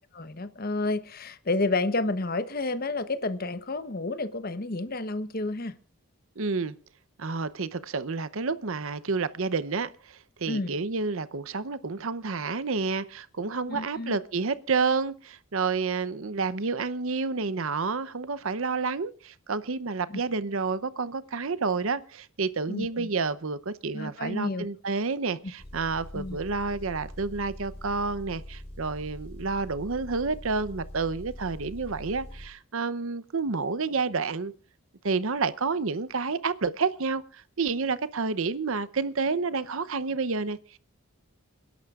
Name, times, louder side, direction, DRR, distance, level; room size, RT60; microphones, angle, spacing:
voice 1, 0.1-5.8 10.5-10.7 13.7-14.2 20.1-20.2 22.7-23.1 23.9-24.7 26.1-26.4, left 2 dB, 40° left, 0.9 m, -30 dB
voice 2, 6.4-6.7 7.2-34.5 35.0-40.8, right 4 dB, 65° right, 0.7 m, -29 dB
Engine, 25.6-32.5, equal, 25° left, 6.5 m, -43 dB
28.5 x 11.0 x 2.4 m
head